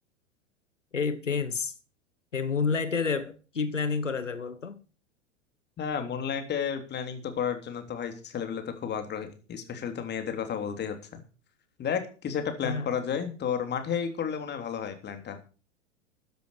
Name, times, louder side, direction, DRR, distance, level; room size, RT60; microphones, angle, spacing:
voice 1, 0.9-1.7 2.3-4.8 12.6-12.9, left 5 dB, 90° left, 12 dB, 1.4 m, -29 dB
voice 2, 5.8-11.2 11.8-15.4, left 7 dB, 30° left, 7 dB, 3.2 m, -32 dB
13.5 x 10.5 x 4.9 m, 0.36 s
figure-of-eight pair, 90°, 36 cm